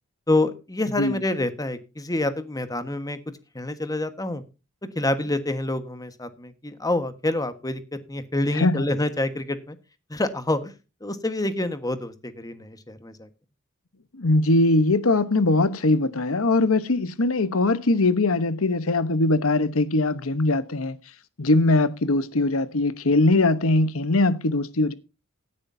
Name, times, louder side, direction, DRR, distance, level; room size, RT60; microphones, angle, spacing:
voice 1, 0.3-3.2 3.5-4.4 4.9-9.8 10.1-10.7 11.0-13.3, left 2 dB, 15° left, 1.4 m, -27 dB
voice 2, 8.5-8.8 14.2-21.0 21.4-24.9, left 2 dB, 70° left, 1.1 m, -21 dB
17.0 x 9.9 x 2.7 m
head